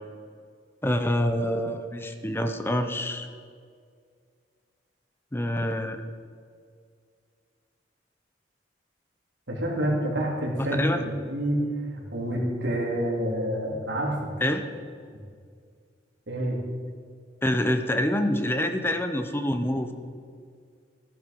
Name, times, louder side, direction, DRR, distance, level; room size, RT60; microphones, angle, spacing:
voice 1, 0.8-3.3 5.3-6.0 10.6-11.0 14.4-14.6 17.4-19.9, left 1 dB, 15° left, 7 dB, 0.7 m, -26 dB
voice 2, 9.5-11.6 11.9-14.2 16.3-16.6, equal, 80° right, -2 dB, 3.4 m, -28 dB
15.0 x 11.0 x 5.3 m, 2.1 s
head